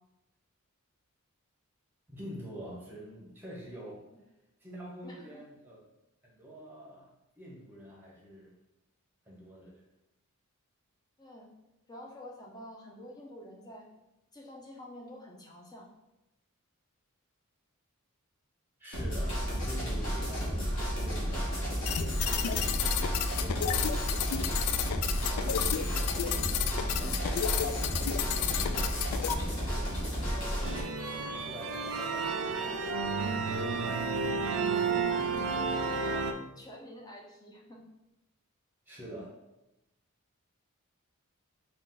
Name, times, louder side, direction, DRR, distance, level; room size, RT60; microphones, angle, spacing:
voice 1, 2.1-4.0 4.6-5.8 6.2-7.1 7.4-8.5 9.2-9.8 18.8-22.7 23.0-24.6 25.3-26.7 27.2-30.0 30.3-32.9 38.9-39.3, equal, 10° right, -3 dB, 0.9 m, -46 dB
voice 2, 5.0-5.4 11.2-11.5 11.9-13.9 14.3-15.9 33.7-34.0 35.5-36.3 36.6-37.8, left 1 dB, 15° left, -1 dB, 0.6 m, -48 dB
sound 1, 18.9-30.8, equal, 60° left, 1.3 m, -32 dB
sound 2, 21.8-29.3, left 8 dB, 80° left, 0.3 m, -32 dB
sound 3, 30.6-36.3, right 4 dB, 70° right, 0.4 m, -31 dB
4.0 x 2.4 x 3.8 m, 0.92 s
head